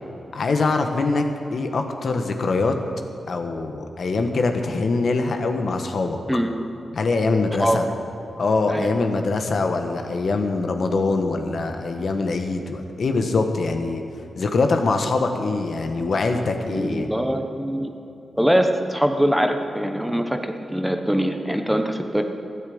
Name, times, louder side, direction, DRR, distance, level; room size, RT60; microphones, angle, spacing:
voice 1, 0.3-1.2 1.5-2.7 3.3-6.2 6.9-7.8 8.4-14.0 14.4-17.1, left 3 dB, 60° left, 5 dB, 1.2 m, -23 dB
voice 2, 16.7-17.9 18.4-22.2, equal, 5° right, 5 dB, 1.0 m, -22 dB
14.0 x 9.4 x 7.9 m, 2.9 s
wide cardioid pair, 100°, 0 cm